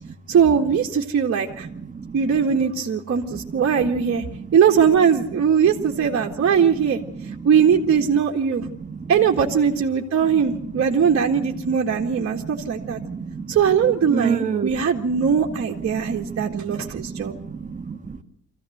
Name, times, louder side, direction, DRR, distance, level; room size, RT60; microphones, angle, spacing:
voice 1, 0.3-1.7 2.1-4.2 4.5-8.7 9.1-13.0 13.5-17.4, right 7 dB, 50° right, 0 dB, 1.8 m, -20 dB
voice 2, 8.6-9.1 10.3-10.8 11.3-11.5 11.9-13.6 14.1-14.9 15.5-15.6 15.9-18.2, right 6 dB, 25° right, 3 dB, 1.6 m, -30 dB
24.0 x 15.5 x 8.0 m, 0.79 s
cardioid pair, 90°, 30 cm